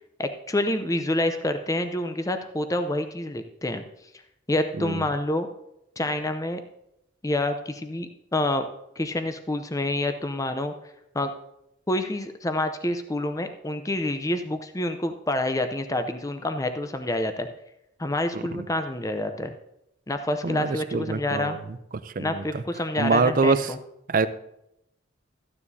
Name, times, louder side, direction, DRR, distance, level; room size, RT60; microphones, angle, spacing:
voice 1, 0.2-3.8 4.5-5.5 6.0-6.6 7.2-8.7 9.0-10.7 11.1-11.3 11.9-17.5 18.0-19.5 20.1-21.6 22.2-23.8, left 1 dB, 20° left, 8 dB, 0.6 m, -27 dB
voice 2, 4.8-5.1 18.3-18.7 20.4-21.6 22.0-22.6 23.0-23.7 24.1-24.3, right 4 dB, 45° right, 13 dB, 0.5 m, -25 dB
14.0 x 9.8 x 2.7 m, 0.82 s
head